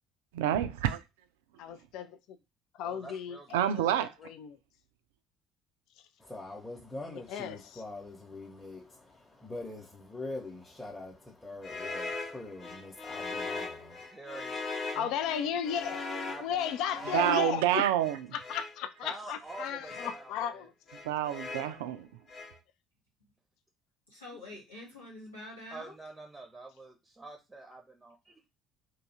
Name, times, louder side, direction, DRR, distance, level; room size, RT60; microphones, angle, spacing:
voice 1, 0.3-1.0 3.5-4.1 17.1-18.2 21.0-22.1, right 11 dB, 70° right, 0.3 m, -28 dB
voice 2, 1.6-2.4 2.7-4.6 7.0-7.8 15.0-16.0 16.4-17.8 18.3-20.7, left 8 dB, 60° left, 0.3 m, -35 dB
voice 3, 2.8-3.9 14.1-14.7 16.3-17.5 19.0-20.7 25.7-28.4, right 2 dB, 15° right, 0.6 m, -46 dB
voice 4, 6.2-14.1, left 2 dB, 15° left, 0.8 m, -43 dB
sound 1, 11.6-18.8 19.4-20.2 20.9-21.8 22.3-22.6, left 3 dB, 45° left, 0.9 m, -40 dB
voice 5, 24.1-25.9, left 1 dB, 85° left, 1.4 m, -46 dB
2.7 x 2.4 x 4.1 m
figure-of-eight pair, 55°, 0 cm